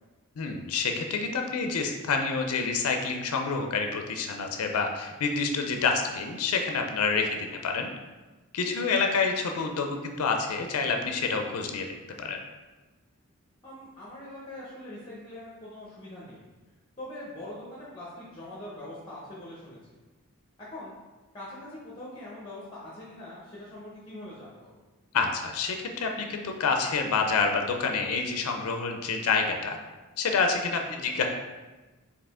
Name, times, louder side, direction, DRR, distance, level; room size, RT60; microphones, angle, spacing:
voice 1, 0.4-7.9 8.5-11.9 12.2-12.4 25.1-29.8 30.2-31.3, left 4 dB, 75° left, 3 dB, 0.4 m, -28 dB
voice 2, 13.6-16.5 17.0-20.0 20.6-20.9 21.3-24.7 30.9-31.1, left 1 dB, 20° left, -5 dB, 0.8 m, -43 dB
4.8 x 2.8 x 3.5 m, 1.2 s
head